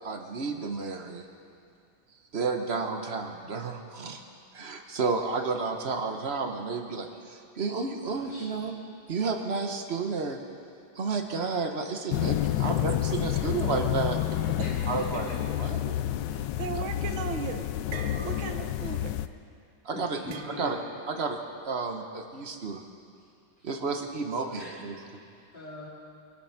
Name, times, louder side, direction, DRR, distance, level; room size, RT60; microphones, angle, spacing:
voice 1, 0.0-1.3 2.3-4.2 4.5-8.8 9.1-10.4 10.9-12.3 12.6-14.2 14.9-15.3 15.6-16.0 19.8-20.2 20.6-20.8 21.1-21.4 21.6-22.8 23.6-25.0, right 4 dB, 40° right, 4 dB, 1.0 m, -31 dB
voice 2, 8.1-8.7 14.6-15.4 19.9-20.7 23.2-23.3 23.6-23.7 24.5-25.1 25.5-25.9, left 1 dB, 25° left, -6 dB, 3.5 m, -43 dB
sound 1, 12.1-19.3, left 12 dB, 75° left, 1.1 m, -29 dB
voice 3, 12.2-12.7 14.6-14.7 16.3-17.7 18.2-19.1, right 7 dB, 80° right, 6 dB, 1.8 m, -37 dB
sound 2, 17.9-18.7 19.0-19.3 20.3-21.0, right 7 dB, 60° right, 1.2 m, -44 dB
24.0 x 9.0 x 5.8 m, 2.4 s
omnidirectional pair, 2.2 m